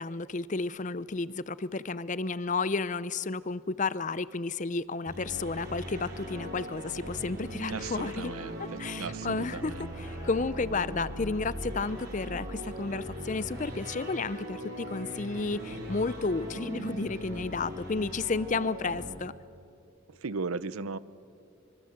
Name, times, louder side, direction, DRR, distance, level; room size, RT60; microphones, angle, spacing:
voice 1, 0.0-8.3 8.8-9.7 10.0-19.3, left 3 dB, 35° left, 17 dB, 0.5 m, -32 dB
sound 1, 5.1-19.0, equal, 50° right, 6.7 m, -40 dB
voice 2, 7.7-9.9 20.1-21.0, right 4 dB, 85° right, 17 dB, 0.8 m, -37 dB
25.0 x 24.5 x 7.9 m, 2.5 s
head